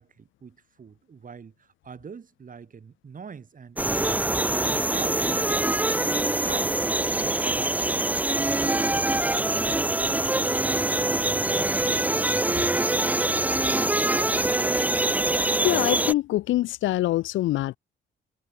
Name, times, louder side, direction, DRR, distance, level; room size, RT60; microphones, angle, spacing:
voice 1, 0.0-6.9 7.2-8.1 8.4-10.5 10.9-14.8, right 6 dB, 45° right, 7.1 m, -44 dB
sound 1, 3.8-16.1, right 2 dB, 10° right, 0.5 m, -24 dB
voice 2, 15.6-17.8, left 16 dB, 75° left, 0.5 m, -24 dB
cardioid pair, 90°, 20 cm